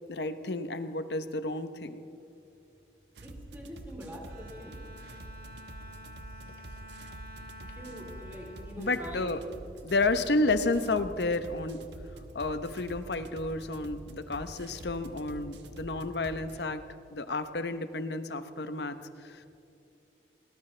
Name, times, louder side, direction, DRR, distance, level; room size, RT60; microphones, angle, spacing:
voice 1, 0.1-2.0 8.8-9.4 9.8-11.8 12.3-16.8 17.1-19.5, left 2 dB, 75° left, 10 dB, 0.9 m, -31 dB
sound 1, 3.1-16.6, right 1 dB, 85° right, 1.2 m, -47 dB
voice 2, 3.2-4.8 7.6-9.3 10.0-10.1, equal, 10° right, -2 dB, 3.4 m, -44 dB
Bowed string instrument, 4.2-9.8, equal, 55° right, 2.0 m, -50 dB
21.5 x 18.5 x 3.4 m, 2.7 s
head